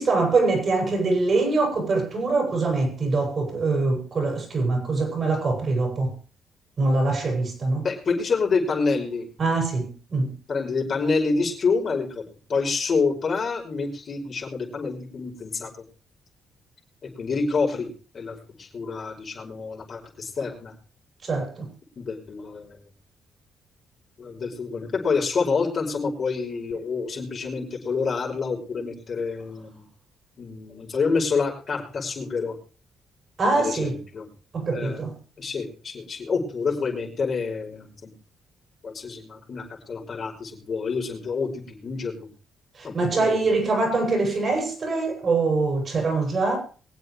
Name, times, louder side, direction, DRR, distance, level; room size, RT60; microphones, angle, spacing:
voice 1, 0.0-6.1 6.8-7.9 9.4-10.3 21.2-21.7 33.4-34.0 34.5-35.1 42.8-46.6, right 3 dB, 50° right, 7.5 m, -23 dB
voice 2, 7.8-9.3 10.5-12.2 12.5-15.7 17.0-17.9 18.1-20.7 22.0-22.8 24.2-29.8 30.4-32.6 33.6-34.3 34.7-35.0 35.4-38.1 38.8-42.3 42.8-43.4, left 4 dB, 50° left, 5.3 m, -27 dB
23.5 x 8.2 x 3.4 m
cardioid pair, 75°, 0 cm